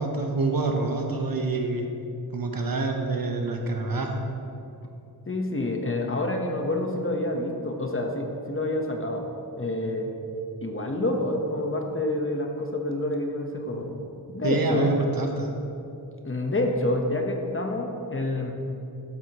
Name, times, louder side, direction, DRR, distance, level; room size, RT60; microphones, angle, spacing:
voice 1, 0.0-1.8 2.3-4.3 14.4-15.5, right 2 dB, 60° right, 2 dB, 1.0 m, -26 dB
voice 2, 5.3-9.3 9.6-10.1 10.6-13.9 14.3-14.9 16.2-18.5, left 1 dB, 30° left, 2 dB, 1.1 m, -28 dB
12.5 x 7.8 x 3.0 m, 2.7 s
wide cardioid pair, 80°, 40 cm